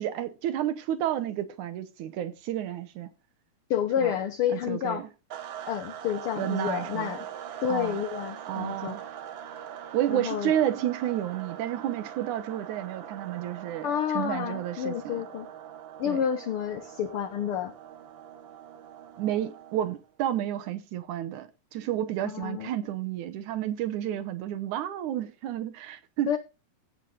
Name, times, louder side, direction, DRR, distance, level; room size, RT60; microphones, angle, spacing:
voice 1, 0.0-3.1 4.0-4.1 4.5-5.1 6.4-7.1 7.7-8.0 8.5-9.1 9.9-15.2 16.1-16.2 19.2-26.4, right 12 dB, 85° right, 2.4 m, -31 dB
voice 2, 3.7-5.0 5.7-7.3 7.6-9.0 10.1-10.5 13.8-15.5 16.0-17.7 22.2-22.7 26.3-26.4, left 9 dB, 65° left, 1.4 m, -29 dB
sound 1, 5.3-20.1, right 10 dB, 65° right, 1.3 m, -42 dB
16.0 x 5.8 x 3.9 m
omnidirectional pair, 3.4 m